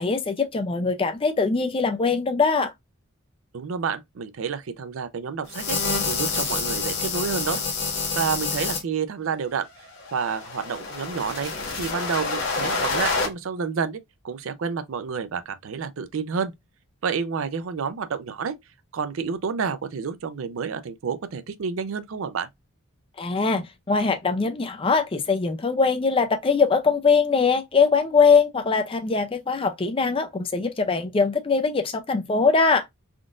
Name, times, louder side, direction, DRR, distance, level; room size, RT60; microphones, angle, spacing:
voice 1, 0.0-2.7 23.2-32.9, left 4 dB, 25° left, 0.4 m, -22 dB
voice 2, 3.5-5.8 6.0-7.6 8.2-9.7 10.1-11.5 11.8-14.0 14.2-16.5 17.0-18.6 18.9-22.5, right 6 dB, 65° right, 0.4 m, -29 dB
sound 1, 5.5-8.8 9.9-13.3, left 4 dB, 55° left, 1.3 m, -27 dB
3.6 x 2.4 x 2.4 m
head